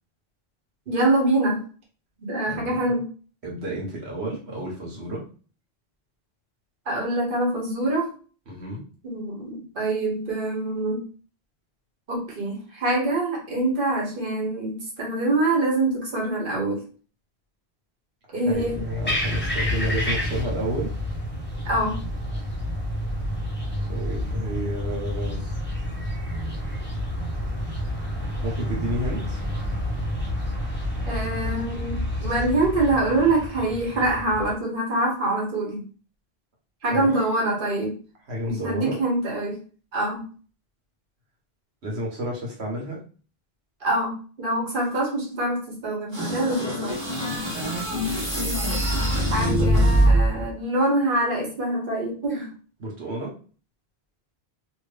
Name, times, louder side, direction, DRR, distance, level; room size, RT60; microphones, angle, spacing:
voice 1, 0.9-1.6 2.2-3.1 6.9-8.1 9.0-11.0 12.1-16.8 18.3-18.8 21.6-22.0 31.1-35.8 36.8-37.9 38.5-39.6 39.9-40.3 43.8-46.9 49.0-52.5, right 2 dB, 55° right, -2 dB, 1.3 m, -25 dB
voice 2, 3.4-5.2 8.5-8.8 18.3-20.9 23.9-25.4 28.4-29.4 36.9-37.1 38.3-39.0 41.8-43.0 52.8-53.3, equal, 70° right, -2 dB, 1.4 m, -31 dB
sound 1, 18.5-34.5, equal, 10° left, 1.0 m, -29 dB
sound 2, 46.1-50.5, equal, 25° right, 1.1 m, -23 dB
2.8 x 2.8 x 3.3 m, 0.39 s
omnidirectional pair, 1.1 m